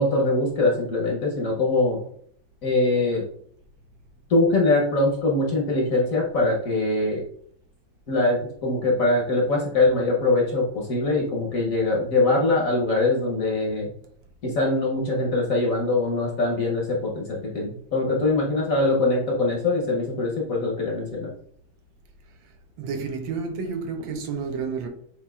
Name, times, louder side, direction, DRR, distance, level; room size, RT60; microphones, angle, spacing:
voice 1, 0.0-2.0 2.6-3.2 4.3-7.2 8.1-13.9 14.4-21.3, left 2 dB, 55° left, 1.1 m, -23 dB
voice 2, 22.4-24.9, right 5 dB, 75° right, 1.4 m, -31 dB
7.1 x 3.0 x 2.3 m
omnidirectional pair, 2.2 m